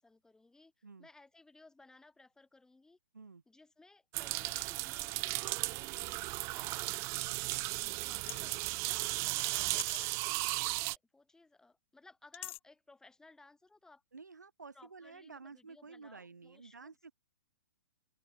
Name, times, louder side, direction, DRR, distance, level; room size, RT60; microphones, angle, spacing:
voice 1, 0.0-3.0 3.5-7.0 8.0-14.0 14.7-17.0, left 3 dB, 5° left, 7.1 m, -61 dB
sound 1, 4.1-11.0, right 25 dB, 30° right, 0.4 m, -35 dB
voice 2, 7.3-7.6 14.1-17.1, right 4 dB, 85° right, 6.0 m, -52 dB
sound 2, 8.3-8.7 9.8-10.1 12.3-12.6, left 18 dB, 45° left, 1.7 m, -44 dB
open air
figure-of-eight pair, 115°, 9 cm